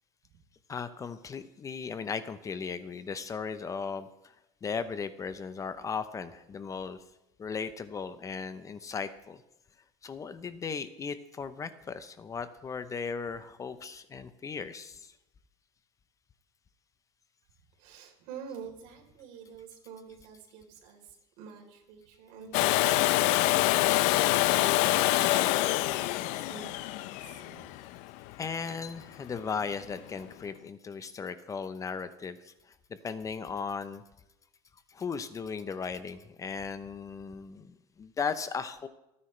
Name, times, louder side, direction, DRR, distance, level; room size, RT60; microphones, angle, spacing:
voice 1, 0.7-4.3 4.6-7.0 7.4-9.4 10.0-15.1 28.4-34.0 34.9-38.9, left 5 dB, 25° left, 12 dB, 0.7 m, -37 dB
voice 2, 17.8-27.8, right 7 dB, 70° right, 1 dB, 3.8 m, -49 dB
Domestic sounds home sounds, 22.5-28.3 30.3-30.4, left 17 dB, 65° left, 0.6 m, -26 dB
27.5 x 9.8 x 3.3 m, 0.91 s
supercardioid pair, 120°, 13 cm